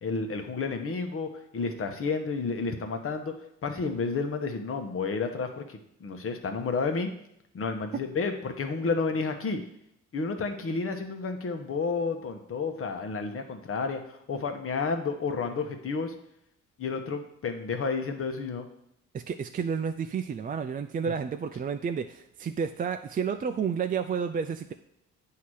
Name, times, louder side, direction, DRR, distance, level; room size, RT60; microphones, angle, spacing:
voice 1, 0.0-3.3 3.6-7.1 7.5-9.6 10.1-16.1 16.8-18.7, left 4 dB, 45° left, 6 dB, 1.0 m, -31 dB
voice 2, 19.1-24.7, right 6 dB, 30° right, 7 dB, 0.4 m, -31 dB
8.3 x 2.8 x 6.3 m, 0.77 s
cardioid pair, 90°, 30 cm